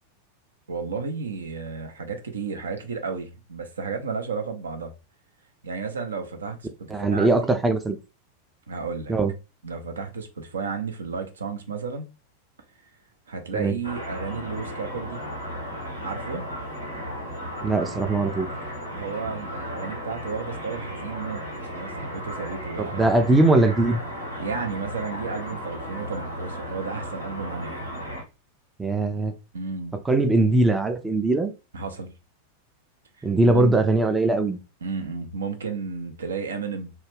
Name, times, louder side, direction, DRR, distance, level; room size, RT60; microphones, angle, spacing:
voice 1, 0.7-4.9 5.6-7.6 8.7-9.1 9.6-12.1 13.3-15.2 16.0-16.4 18.9-21.4 21.7-23.1 24.4-27.8 29.5-30.0 31.7-32.1 33.2-33.8 34.8-36.9, right 5 dB, 70° right, 0.5 m, -33 dB
voice 2, 6.9-8.0 9.1-9.3 13.5-13.7 17.6-18.5 22.8-24.0 28.8-29.3 30.0-31.5 33.2-34.6, right 2 dB, 10° right, 0.3 m, -21 dB
sound 1, 13.8-28.2, equal, 85° right, 1.0 m, -35 dB
2.3 x 2.1 x 3.3 m
figure-of-eight pair, 90°, 0 cm